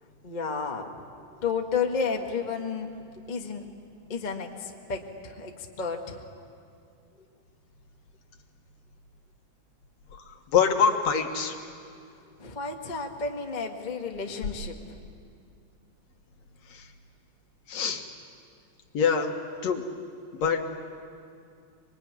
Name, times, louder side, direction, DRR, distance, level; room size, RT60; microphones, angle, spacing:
voice 1, 0.2-0.9 1.4-2.9 3.3-3.6 4.1-5.5 5.8-6.2 12.4-15.0, left 5 dB, 25° left, 2 dB, 1.1 m, -31 dB
voice 2, 10.1-11.6 16.7-16.9 17.7-18.0 18.9-19.3 19.6-19.9 20.3-20.6, left 6 dB, 65° left, 4 dB, 2.6 m, -25 dB
26.0 x 23.0 x 9.6 m, 2.3 s
omnidirectional pair, 3.4 m